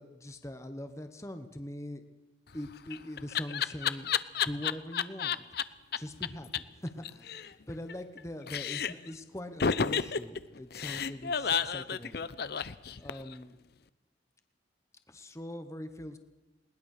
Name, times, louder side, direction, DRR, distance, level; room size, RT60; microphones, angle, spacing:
voice 1, 0.0-2.0 2.5-4.1 4.4-5.4 6.0-12.2 13.0-13.6 15.1-16.2, left 1 dB, 15° left, 8 dB, 1.0 m, -42 dB
Laughter, 2.5-5.6 5.9-6.0 6.2-6.3 6.5-6.6 6.9-8.2 8.5-9.1 9.6-13.3, left 7 dB, 55° left, 0.6 m, -31 dB
20.5 x 19.5 x 6.6 m, 1.1 s
head